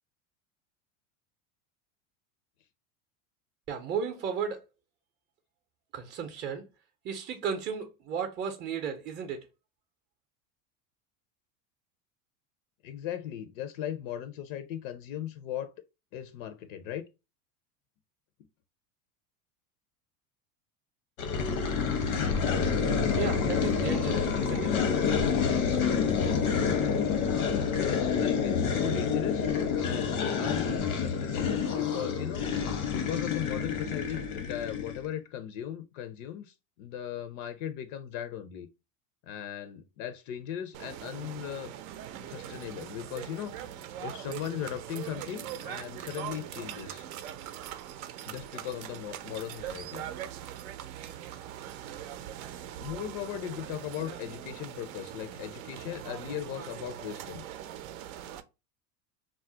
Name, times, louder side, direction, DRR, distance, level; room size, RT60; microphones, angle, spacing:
voice 1, 3.7-4.6 5.9-6.6 7.0-9.4 23.1-24.8, right 7 dB, 25° right, 0.5 m, -34 dB
voice 2, 12.8-15.7 16.1-17.0 27.7-29.5 29.8-32.5 32.9-38.7 39.3-41.7 42.2-43.5 44.0-47.1 48.3-50.0 52.8-57.5, left 10 dB, 70° left, 0.5 m, -38 dB
sound 1, 21.2-35.1, left 6 dB, 90° left, 0.8 m, -28 dB
sound 2, 40.7-58.4, right 11 dB, 75° right, 0.5 m, -41 dB
2.4 x 2.0 x 3.7 m
supercardioid pair, 110°, 42 cm